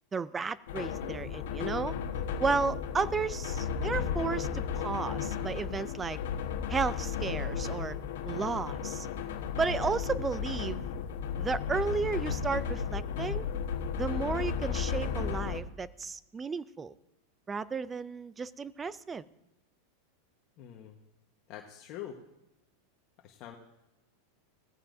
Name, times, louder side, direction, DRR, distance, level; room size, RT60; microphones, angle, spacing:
voice 1, 0.1-1.9 2.4-6.2 6.7-8.0 8.3-9.1 9.6-10.9 11.4-13.5 13.9-16.9 17.5-19.2, right 5 dB, 15° right, 17 dB, 0.4 m, -33 dB
sound 1, 0.7-15.6, left 7 dB, 80° left, 1.3 m, -34 dB
voice 2, 20.6-21.0 21.5-22.2 23.2-23.5, left 10 dB, 45° left, 1 dB, 1.3 m, -44 dB
17.0 x 14.5 x 2.7 m, 0.96 s
supercardioid pair, 145°, 0 cm